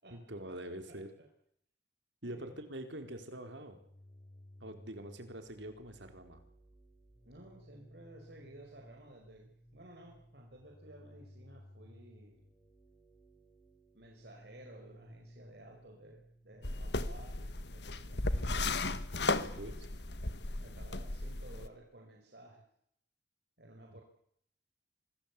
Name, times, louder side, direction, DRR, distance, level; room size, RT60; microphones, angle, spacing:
voice 1, 0.1-1.1 2.2-3.8 4.6-6.4 18.5-19.9 23.9-24.0, right 1 dB, 80° right, 7 dB, 4.2 m, -45 dB
sound 1, 3.7-17.3, equal, 25° left, 7.7 m, -58 dB
voice 2, 7.3-12.4 13.9-18.9 20.6-22.6 23.6-24.0, right 1 dB, 60° right, 1 dB, 5.3 m, -55 dB
sound 2, 16.6-21.7, left 2 dB, 70° left, 1.6 m, -35 dB
26.0 x 20.0 x 8.5 m, 0.70 s
head